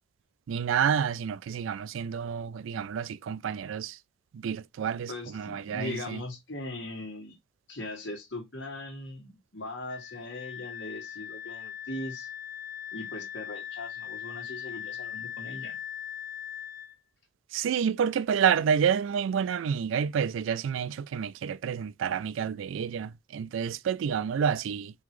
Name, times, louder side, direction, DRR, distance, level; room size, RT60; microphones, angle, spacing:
voice 1, 0.5-3.9 4.4-5.1 5.3-6.2 17.5-24.9, right 7 dB, 80° right, 0.3 m, -29 dB
voice 2, 5.1-7.4 7.7-12.3 12.9-15.8, left 2 dB, 65° left, 1.8 m, -40 dB
Wind instrument woodwind instrument, 9.9-16.9, left 10 dB, 40° left, 1.6 m, -40 dB
3.9 x 2.9 x 3.0 m
head